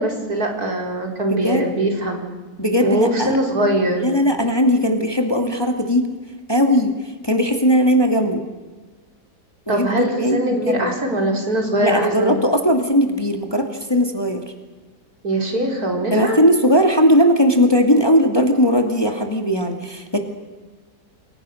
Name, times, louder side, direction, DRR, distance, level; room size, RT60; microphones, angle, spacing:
voice 1, 0.0-2.2 2.8-4.0 9.7-12.4 15.2-16.4, right 1 dB, 65° right, 2 dB, 4.8 m, -21 dB
voice 2, 1.3-1.7 2.6-3.4 4.0-6.1 6.5-6.9 7.2-8.4 9.7-10.9 11.8-14.4 16.1-20.2, equal, 15° left, 4 dB, 2.3 m, -18 dB
29.5 x 22.5 x 6.5 m, 1.3 s
omnidirectional pair, 1.7 m